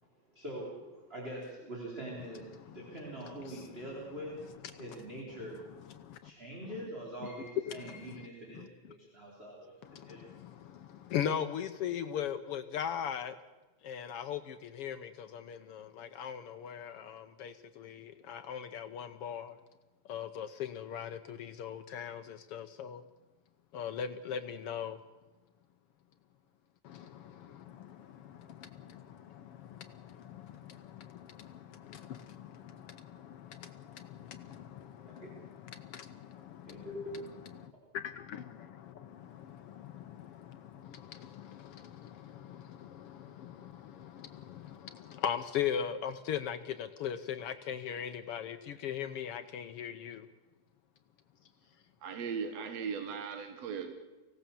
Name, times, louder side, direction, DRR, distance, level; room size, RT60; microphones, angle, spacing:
voice 1, 0.0-5.6 6.2-10.4 35.1-35.3 36.6-37.3, right 1 dB, 20° right, -3 dB, 3.7 m, -44 dB
voice 2, 5.9-6.3 7.7-8.0 8.5-8.7 9.8-13.3 13.8-19.6 20.1-23.0 23.7-25.0 26.8-36.9 37.6-50.3, left 8 dB, 70° left, 10 dB, 1.4 m, -40 dB
voice 3, 52.0-53.9, right 6 dB, 65° right, 7 dB, 2.5 m, -38 dB
24.0 x 17.5 x 7.0 m, 1.2 s
omnidirectional pair, 3.4 m